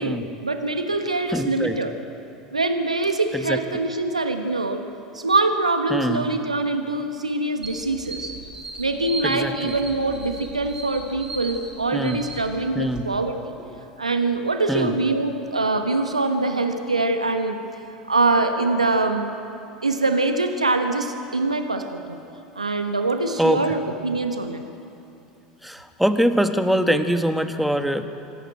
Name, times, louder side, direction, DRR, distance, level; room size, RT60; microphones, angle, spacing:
voice 1, 0.0-1.9 2.5-4.8 5.1-8.3 8.8-13.5 14.0-17.6 18.1-19.3 19.8-22.2 22.6-24.6, right 2 dB, 90° right, 6 dB, 1.2 m, -24 dB
voice 2, 1.3-1.8 3.3-3.6 5.9-6.2 9.2-9.8 11.9-12.2 12.7-13.1 14.7-15.0 23.4-23.6 25.6-28.0, equal, ahead, 8 dB, 1.4 m, -23 dB
sound 1, 7.6-13.0, right 2 dB, 20° right, 4.3 m, -37 dB
26.0 x 11.5 x 8.8 m, 2.8 s
figure-of-eight pair, 80°, 3 cm